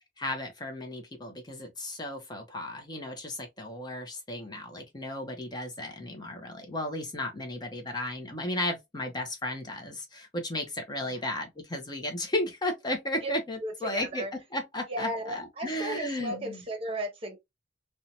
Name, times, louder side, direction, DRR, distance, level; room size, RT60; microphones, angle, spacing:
voice 1, 0.2-14.2 14.5-16.6, left 1 dB, 25° left, 0.6 m, -34 dB
voice 2, 13.6-14.3 14.9-17.4, right 1 dB, 30° right, 0.8 m, -35 dB
2.7 x 2.1 x 2.7 m
head